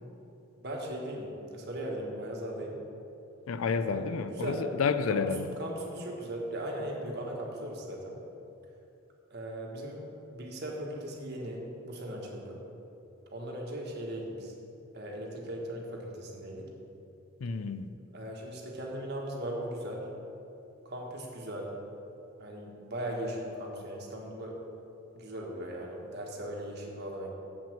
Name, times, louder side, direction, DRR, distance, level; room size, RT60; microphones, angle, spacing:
voice 1, 0.6-2.8 3.8-4.7 5.1-5.2 5.6-8.2 9.3-10.0 10.3-12.6 13.3-14.5 14.9-16.7 18.1-20.1 20.8-21.7 22.4-24.6 25.1-27.3, right 1 dB, 50° right, -1 dB, 1.5 m, -38 dB
voice 2, 3.5-5.5 17.4-17.9, left 5 dB, 85° left, 11 dB, 0.5 m, -30 dB
7.4 x 5.8 x 7.4 m, 2.8 s
head